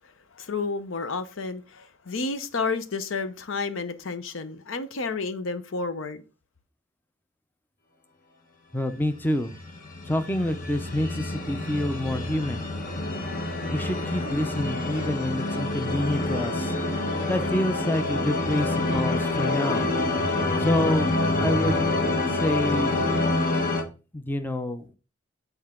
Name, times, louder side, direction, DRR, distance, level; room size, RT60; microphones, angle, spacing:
voice 1, 0.3-6.2, left 4 dB, 80° left, 0.7 m, -31 dB
voice 2, 8.7-9.6 10.1-12.6 13.7-16.7 17.3-19.9 20.6-21.8 22.3-23.0 24.1-25.0, left 1 dB, 10° left, 0.5 m, -27 dB
sound 1, 9.5-23.8, left 2 dB, 45° left, 1.0 m, -27 dB
7.7 x 4.6 x 3.6 m
head